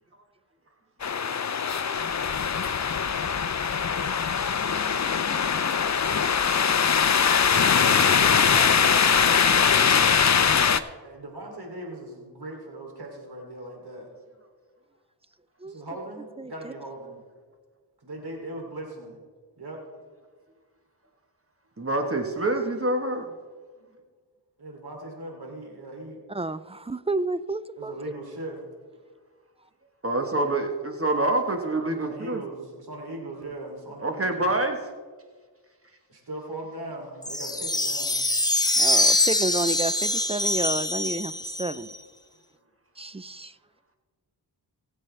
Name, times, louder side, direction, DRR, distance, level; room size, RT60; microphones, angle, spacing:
sound 1, 1.0-10.8, left 6 dB, 40° left, 0.7 m, -22 dB
voice 1, 8.0-9.3 11.0-14.1 15.6-17.2 18.0-19.2 19.6-19.8 23.7-23.9 24.6-26.2 26.5-26.6 27.8-28.6 32.0-34.4 36.1-38.2, right 1 dB, 55° right, 0 dB, 3.1 m, -39 dB
voice 2, 16.4-16.7 26.3-28.0 38.8-41.9 43.0-43.5, right 2 dB, 15° right, 15 dB, 0.3 m, -30 dB
voice 3, 21.8-23.3 30.0-32.4 34.0-34.9, right 2 dB, 30° right, 4 dB, 1.4 m, -26 dB
sound 2, 37.2-42.0, left 1 dB, 10° left, 0.9 m, -24 dB
20.0 x 7.8 x 3.3 m, 1.5 s
cardioid pair, 60°, 45 cm